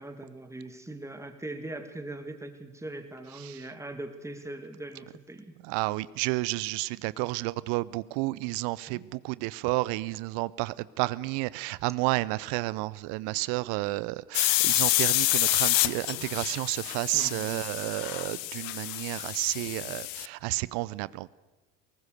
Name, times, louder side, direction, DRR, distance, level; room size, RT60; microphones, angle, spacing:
voice 1, 0.0-5.5 8.9-9.0 17.1-17.6, right 2 dB, 5° right, 7 dB, 2.3 m, -41 dB
voice 2, 5.6-21.3, right 21 dB, 55° right, 21 dB, 0.7 m, -31 dB
sound 1, 14.3-20.3, left 18 dB, 75° left, 0.8 m, -28 dB
21.5 x 18.5 x 6.7 m, 1.2 s
hypercardioid pair, 75°, 50 cm